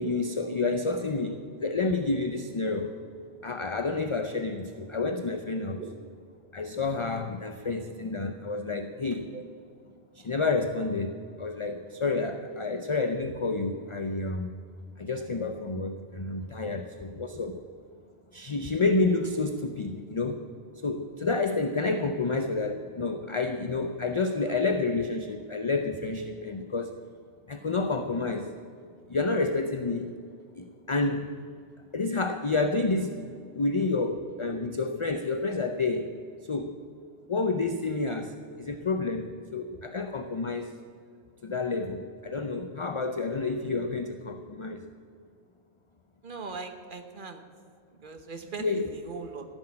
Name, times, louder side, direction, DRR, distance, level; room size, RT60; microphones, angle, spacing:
voice 1, 0.0-2.9 3.4-5.8 6.5-9.3 10.1-14.5 15.0-17.6 18.3-20.5 20.8-26.9 27.5-28.5 29.1-30.1 30.6-31.3 31.9-36.1 36.5-36.8 37.3-40.7 41.4-44.8 48.6-48.9, left 3 dB, 35° left, 7 dB, 0.5 m, -29 dB
voice 2, 46.2-47.4 48.0-49.4, right 4 dB, 45° right, 7 dB, 1.2 m, -40 dB
14.5 x 6.3 x 8.6 m, 2.3 s
omnidirectional pair, 1.2 m